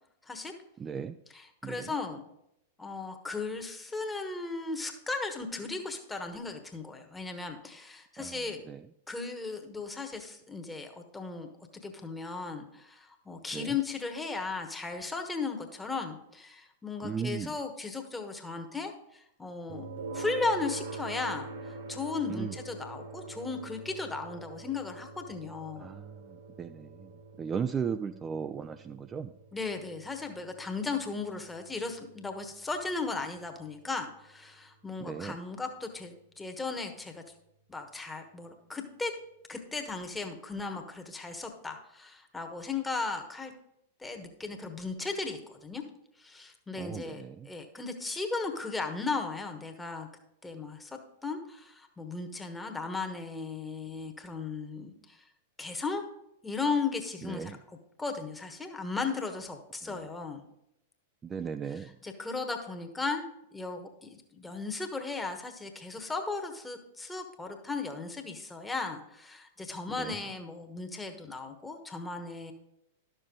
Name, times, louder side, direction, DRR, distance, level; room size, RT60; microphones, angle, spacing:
voice 1, 0.2-0.5 1.3-2.2 2.8-8.6 9.1-11.5 11.8-25.9 29.5-37.2 37.7-39.1 39.5-43.5 44.0-45.8 46.2-50.1 50.4-55.2 55.6-56.0 56.4-60.4 61.6-63.3 63.5-72.5, left 4 dB, 10° left, 4 dB, 1.2 m, -36 dB
voice 2, 0.8-1.1 1.6-1.9 8.2-8.4 8.7-8.8 13.5-13.7 17.0-17.5 22.3-22.5 25.8-27.1 27.4-29.3 35.0-35.4 46.7-47.5 57.2-57.6 61.2-61.9 70.0-70.2, right 6 dB, 20° right, 9 dB, 0.3 m, -36 dB
sound 1, 19.7-34.6, right 3 dB, 55° right, 1.4 m, -45 dB
12.0 x 6.8 x 3.8 m, 0.79 s
figure-of-eight pair, 95°, 0 cm